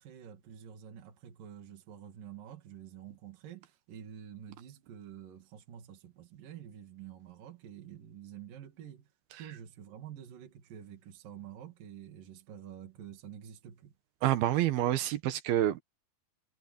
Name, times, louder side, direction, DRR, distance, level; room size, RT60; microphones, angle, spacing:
voice 1, 0.0-9.1 9.4-13.9, right 9 dB, 65° right, 3.8 m, -48 dB
voice 2, 14.2-15.8, right 13 dB, 85° right, 3.2 m, -28 dB
omnidirectional pair, 4.3 m